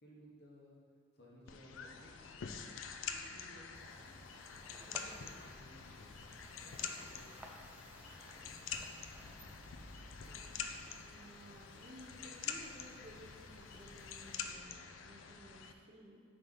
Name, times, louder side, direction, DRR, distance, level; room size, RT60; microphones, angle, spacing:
voice 1, 0.0-0.8 1.1-2.2 3.1-4.3 4.6-6.3 6.6-7.4 7.6-7.8, equal, 55° left, -4 dB, 1.4 m, -59 dB
sound 1, 1.5-15.7, left 6 dB, 70° left, 0.4 m, -47 dB
sound 2, 3.7-14.5, equal, 5° right, 0.4 m, -57 dB
voice 2, 10.3-16.2, equal, 35° right, 0 dB, 0.7 m, -57 dB
5.1 x 4.5 x 5.5 m, 2.1 s
head